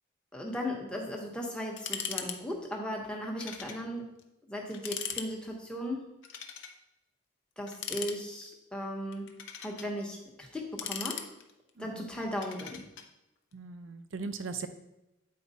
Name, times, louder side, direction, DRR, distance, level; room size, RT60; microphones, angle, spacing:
voice 1, 0.3-4.0 4.5-6.1 7.6-9.3 9.6-11.2 11.8-12.8, equal, 5° left, -1 dB, 1.0 m, -37 dB
sound 1, 1.8-2.4 2.6-2.7 3.4-3.8 4.2-4.3 4.7-5.3 6.2-6.8 7.7-8.5 9.1-9.9 10.5-11.7 12.4-13.1, left 8 dB, 70° left, 0.6 m, -39 dB
voice 2, 11.8-12.1 13.5-14.7, right 4 dB, 80° right, 9 dB, 0.6 m, -39 dB
8.5 x 4.6 x 4.1 m, 0.92 s
head